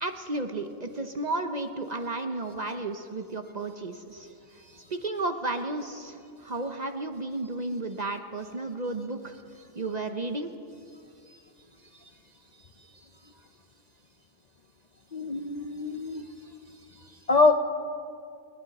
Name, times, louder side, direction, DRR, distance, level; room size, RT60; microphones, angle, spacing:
voice 1, 0.0-4.3 4.9-9.3 9.8-10.5, right 2 dB, 40° right, 6 dB, 0.8 m, -33 dB
voice 2, 15.1-16.2 17.3-17.5, left 3 dB, 45° left, 6 dB, 0.6 m, -23 dB
28.5 x 11.5 x 4.2 m, 2.4 s
omnidirectional pair, 1.4 m